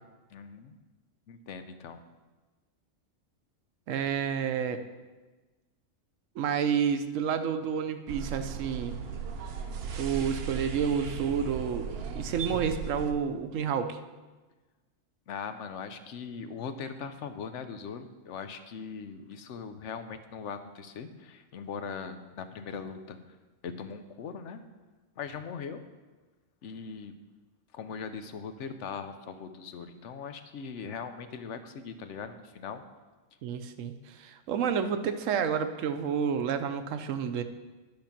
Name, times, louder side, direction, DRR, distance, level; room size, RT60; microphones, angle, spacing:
voice 1, 0.3-0.7 1.3-2.0 15.3-23.2 23.6-24.6 25.2-25.8 26.6-27.1 27.7-32.8, left 6 dB, 70° left, 9 dB, 1.0 m, -40 dB
voice 2, 3.9-4.8 6.4-9.0 10.0-14.0 33.4-37.4, right 7 dB, 85° right, 9 dB, 1.0 m, -30 dB
sound 1, 8.1-13.1, right 6 dB, 60° right, 0.9 m, -37 dB
10.5 x 5.2 x 5.8 m, 1.2 s
omnidirectional pair, 1.3 m